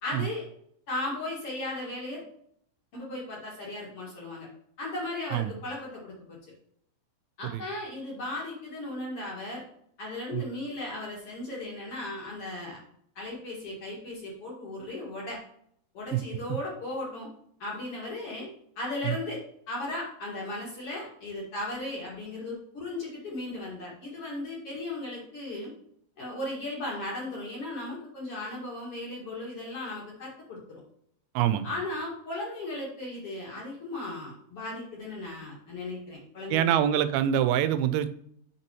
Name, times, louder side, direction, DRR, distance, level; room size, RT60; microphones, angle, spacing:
voice 1, 0.0-0.4 0.9-2.2 2.9-4.5 4.8-6.4 7.4-9.6 10.0-12.8 13.2-15.4 15.9-17.3 17.6-18.5 18.8-19.4 19.7-25.7 26.2-30.8 31.6-36.8, left 2 dB, 45° left, -4 dB, 2.5 m, -36 dB
voice 2, 31.4-31.7 36.5-38.1, right 10 dB, 90° right, 12 dB, 2.5 m, -25 dB
7.7 x 6.0 x 3.0 m, 0.67 s
omnidirectional pair, 4.4 m